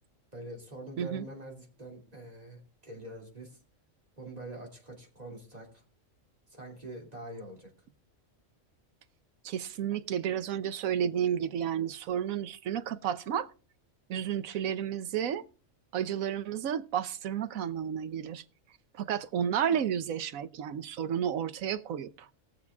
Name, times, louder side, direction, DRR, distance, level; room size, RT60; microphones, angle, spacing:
voice 1, 0.3-3.6 4.2-5.8 6.5-7.7, right 1 dB, 30° right, 2.9 m, -45 dB
voice 2, 9.4-13.5 14.1-15.4 15.9-18.4 18.9-22.3, right 9 dB, 90° right, 1.2 m, -32 dB
19.5 x 6.9 x 3.5 m
omnidirectional pair, 1.4 m